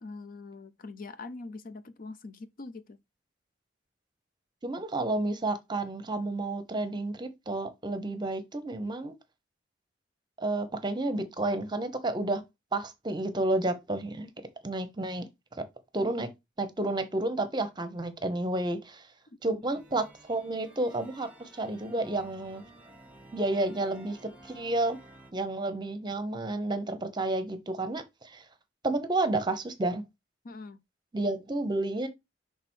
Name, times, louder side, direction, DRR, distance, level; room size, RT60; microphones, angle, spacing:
voice 1, 0.0-3.0 16.0-16.1 19.5-19.6 30.4-30.8, left 3 dB, 50° left, 0.5 m, -43 dB
voice 2, 4.6-9.2 10.4-12.4 12.7-14.3 14.6-15.3 15.6-15.7 15.9-16.3 16.6-19.1 19.4-22.6 23.3-25.0 25.3-28.4 28.8-30.0 31.1-32.1, right 2 dB, 25° right, 0.9 m, -31 dB
Pipe Organ of the cathedral of Santiago de Compostela, 19.6-25.3, right 2 dB, 10° right, 1.3 m, -53 dB
6.0 x 3.5 x 4.4 m
head